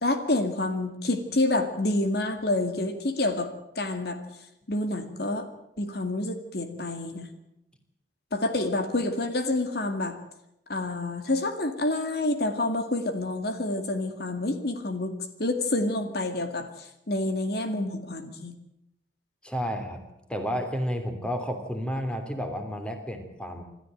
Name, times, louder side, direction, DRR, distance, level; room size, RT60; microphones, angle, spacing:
voice 1, 0.0-3.5 3.8-4.2 4.7-5.5 5.8-7.3 8.3-10.2 10.7-18.5, left 2 dB, 60° left, 7 dB, 2.2 m, -28 dB
voice 2, 19.4-23.6, equal, 5° left, 6 dB, 3.1 m, -31 dB
27.0 x 13.5 x 9.1 m, 0.84 s
head